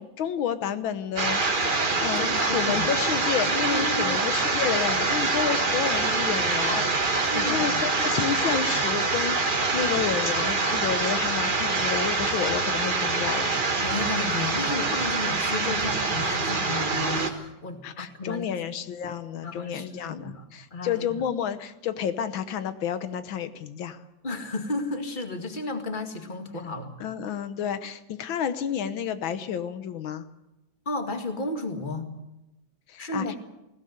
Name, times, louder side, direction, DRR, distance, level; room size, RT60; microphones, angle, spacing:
voice 1, 0.0-1.6 2.0-13.6 17.8-24.0 27.0-30.3 32.9-33.4, left 8 dB, 90° left, 11 dB, 1.8 m, -30 dB
sound 1, 1.2-17.3, right 3 dB, 30° right, 1.5 m, -25 dB
voice 2, 2.1-3.1 3.7-4.3 7.2-7.8 13.8-18.5 19.4-20.4 20.7-21.1 24.2-26.9 30.9-32.1 33.0-33.4, left 2 dB, 25° left, 5 dB, 2.0 m, -33 dB
20.5 x 16.5 x 7.9 m, 0.95 s
omnidirectional pair, 2.1 m